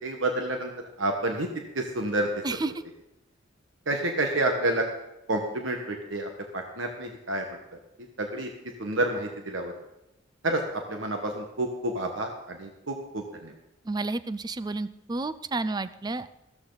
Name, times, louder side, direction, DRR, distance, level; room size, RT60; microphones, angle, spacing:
voice 1, 0.0-0.7 1.0-1.5 1.7-2.3 3.9-4.8 5.3-7.4 8.2-8.5 8.8-9.7 10.4-13.5, right 1 dB, 90° right, 3 dB, 1.4 m, -29 dB
voice 2, 13.9-16.3, right 3 dB, 20° right, 14 dB, 0.4 m, -31 dB
14.0 x 13.5 x 4.0 m, 0.93 s
head